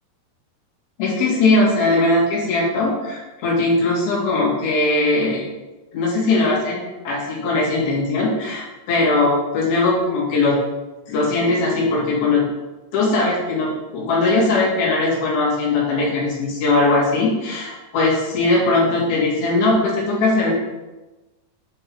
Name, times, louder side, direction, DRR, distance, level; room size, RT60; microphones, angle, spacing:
voice 1, 1.0-5.4 5.9-6.8 7.0-10.6 11.1-12.4 12.9-20.5, left 2 dB, 60° left, -6 dB, 4.2 m, -19 dB
10.5 x 5.3 x 4.8 m, 1.1 s
omnidirectional pair, 5.1 m